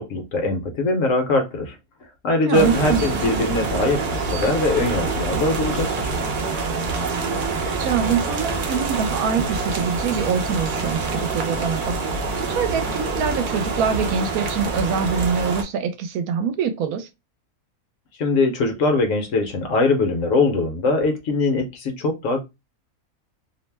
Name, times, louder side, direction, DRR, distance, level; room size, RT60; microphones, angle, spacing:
voice 1, 0.0-1.7 2.2-6.1 18.2-22.4, left 2 dB, 65° left, 1.0 m, -22 dB
voice 2, 2.4-3.0 7.0-11.9 12.4-17.1, right 7 dB, 75° right, 1.0 m, -24 dB
sound 1, 2.5-15.6, right 3 dB, 60° right, 0.5 m, -26 dB
2.6 x 2.0 x 3.2 m
omnidirectional pair, 1.6 m